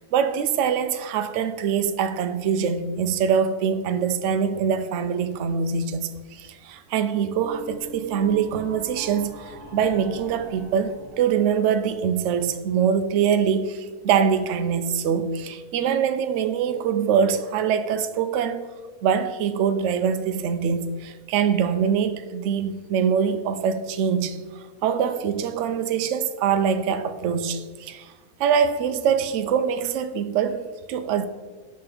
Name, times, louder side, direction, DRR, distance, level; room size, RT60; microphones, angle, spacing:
voice 1, 0.1-18.7 19.0-28.1 28.4-31.2, right 7 dB, 65° right, 0.8 m, -24 dB
sound 1, 7.3-12.4, right 1 dB, 85° right, 1.5 m, -42 dB
6.6 x 4.4 x 5.0 m
omnidirectional pair, 1.6 m